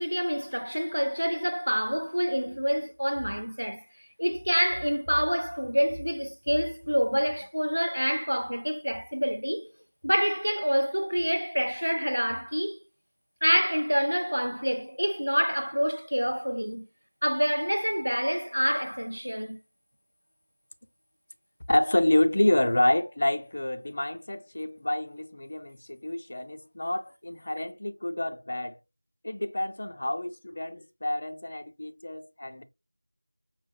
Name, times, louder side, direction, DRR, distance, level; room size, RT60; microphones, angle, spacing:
voice 1, 0.0-3.8 4.2-9.7 10.0-12.8 13.4-16.9 17.2-19.6, equal, 85° right, 0.4 m, -27 dB
voice 2, 21.7-28.8 29.2-32.6, left 1 dB, 35° left, 0.4 m, -28 dB
5.4 x 2.2 x 2.2 m
figure-of-eight pair, 175°, 0 cm